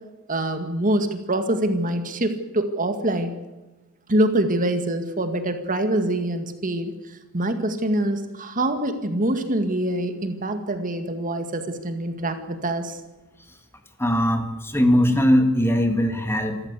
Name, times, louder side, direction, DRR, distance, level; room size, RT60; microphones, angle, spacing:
voice 1, 0.3-3.3 4.1-13.0, right 1 dB, 40° right, 7 dB, 2.0 m, -25 dB
voice 2, 14.0-16.7, equal, 10° left, 6 dB, 2.2 m, -20 dB
26.5 x 14.0 x 8.3 m, 1.1 s
head